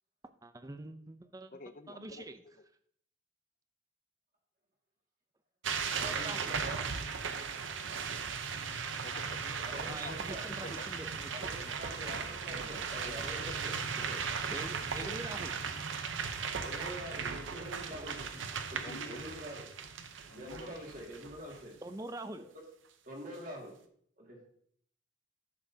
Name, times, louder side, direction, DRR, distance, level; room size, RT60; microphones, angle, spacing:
voice 1, 0.4-1.5 1.9-2.4 6.2-6.5 9.9-11.8 12.5-12.7 14.5-15.5 21.8-22.5, right 2 dB, 20° right, 10 dB, 0.4 m, -44 dB
voice 2, 1.5-2.3 9.0-10.9 13.0-13.7 14.7-15.2 17.1-17.2 18.8-19.4 20.3-20.8, left 3 dB, 40° left, 12 dB, 0.4 m, -50 dB
sound 1, 5.6-21.6, right 6 dB, 90° right, 0.7 m, -37 dB
voice 3, 5.9-6.8 9.6-10.4 10.9-11.0 11.3-14.2 16.6-18.4 18.7-19.7 20.3-21.7 23.1-23.8 24.2-24.4, equal, 45° right, -1 dB, 2.1 m, -45 dB
10.5 x 7.5 x 2.8 m, 0.65 s
head